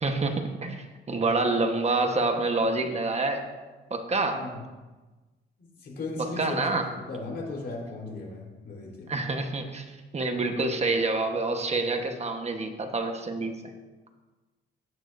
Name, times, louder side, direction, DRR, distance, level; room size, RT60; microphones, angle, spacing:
voice 1, 0.0-3.5 3.9-4.5 6.4-6.9 9.1-13.5, right 3 dB, 35° right, 5 dB, 1.2 m, -27 dB
voice 2, 4.3-4.6 5.6-6.6 7.1-9.1, left 3 dB, 55° left, -2 dB, 3.8 m, -37 dB
16.5 x 9.1 x 2.6 m, 1.2 s
cardioid pair, 90°, 20 cm